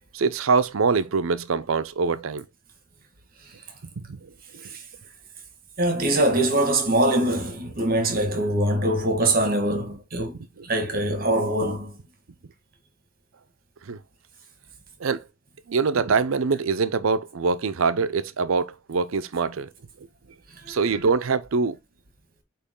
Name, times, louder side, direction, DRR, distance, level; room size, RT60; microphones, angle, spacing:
voice 1, 0.1-2.4 4.0-4.6 7.8-7.9 8.7-8.8 10.6-10.7 13.9-14.0 15.0-15.2 15.7-19.7 20.7-21.8, right 4 dB, 85° right, 0.6 m, -24 dB
voice 2, 5.8-10.4 10.6-11.9 20.6-20.8, right 1 dB, 45° right, 1.7 m, -23 dB
8.4 x 3.1 x 3.7 m
head